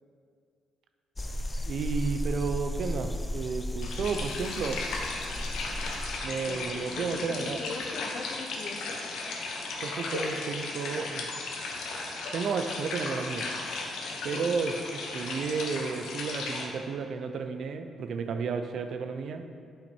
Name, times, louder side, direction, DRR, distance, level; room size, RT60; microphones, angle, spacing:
sound 1, 1.2-6.2, left 1 dB, 20° left, 0.5 m, -34 dB
voice 1, 1.6-4.8 6.2-7.6 9.8-11.3 12.3-13.5 14.2-19.4, right 5 dB, 65° right, 7 dB, 0.6 m, -32 dB
sound 2, 3.8-16.6, left 3 dB, 75° left, 1.2 m, -36 dB
voice 2, 6.5-9.0 14.1-14.5, left 3 dB, 55° left, 4 dB, 0.8 m, -41 dB
8.3 x 5.8 x 4.4 m, 2.3 s
cardioid pair, 90°, 0 cm